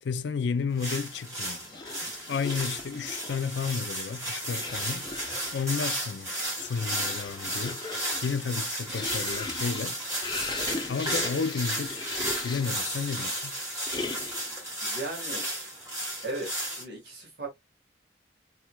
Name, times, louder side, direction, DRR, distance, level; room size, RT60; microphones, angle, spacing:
voice 1, 0.0-1.7 2.3-5.1 5.5-7.8 8.2-10.0 10.9-12.1 12.4-13.5, left 5 dB, 75° left, 0.4 m, -32 dB
sound 1, 0.8-16.8, right 1 dB, 20° right, 1.9 m, -34 dB
sound 2, 1.6-3.5 4.4-5.7 6.4-12.9 13.9-14.5, left 3 dB, 25° left, 0.6 m, -39 dB
voice 2, 14.8-15.5 16.2-17.5, right 2 dB, 65° right, 1.5 m, -37 dB
3.9 x 3.1 x 2.2 m
head